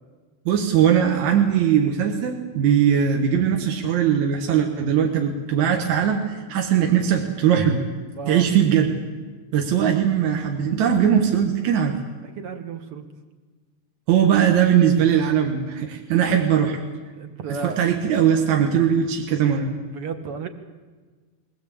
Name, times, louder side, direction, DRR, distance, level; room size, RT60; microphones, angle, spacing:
voice 1, 0.5-7.8 8.3-8.9 9.5-12.0 14.1-16.8 17.5-19.7, right 8 dB, 75° right, 3 dB, 2.8 m, -20 dB
voice 2, 8.1-8.5 12.4-13.1 17.2-17.8 19.9-20.5, right 5 dB, 55° right, 7 dB, 2.2 m, -33 dB
22.5 x 17.5 x 8.6 m, 1.4 s
omnidirectional pair, 3.5 m